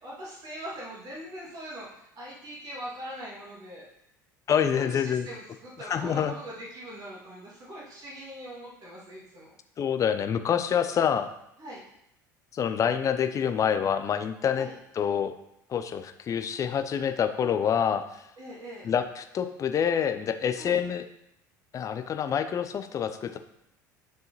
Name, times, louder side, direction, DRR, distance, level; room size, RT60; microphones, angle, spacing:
voice 1, 0.0-3.9 4.7-9.5 11.6-11.8 14.5-14.7 18.4-18.9 20.6-20.8, equal, 40° right, -5 dB, 2.3 m, -41 dB
voice 2, 4.5-5.3 5.8-6.3 9.8-11.3 12.5-14.7 14.9-15.3 15.7-18.0 18.8-21.1 21.7-23.4, left 8 dB, 30° left, 9 dB, 0.6 m, -27 dB
10.5 x 4.7 x 3.0 m, 0.78 s
figure-of-eight pair, 65°, 10 cm